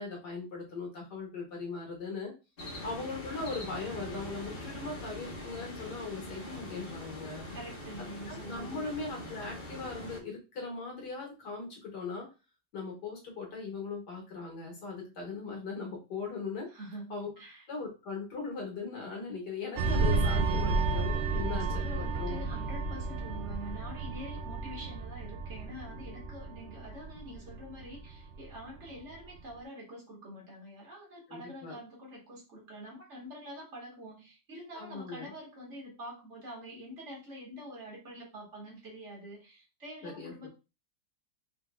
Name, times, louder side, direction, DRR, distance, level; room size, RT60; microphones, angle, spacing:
voice 1, 0.0-2.3 2.8-7.5 8.3-12.3 12.7-16.7 17.1-17.3 17.7-22.4 31.3-31.8 34.7-35.3 40.0-40.5, left 4 dB, 85° left, -1 dB, 2.3 m, -39 dB
sound 1, 2.6-10.2, left 1 dB, 35° left, 1.4 m, -43 dB
voice 2, 7.5-8.9 16.7-17.6 20.0-21.0 21.3-40.5, equal, 45° right, -3 dB, 2.1 m, -46 dB
sound 2, 19.8-28.8 29.1-29.4, right 3 dB, 80° right, 0.6 m, -32 dB
5.0 x 3.6 x 2.4 m, 0.29 s
omnidirectional pair, 1.8 m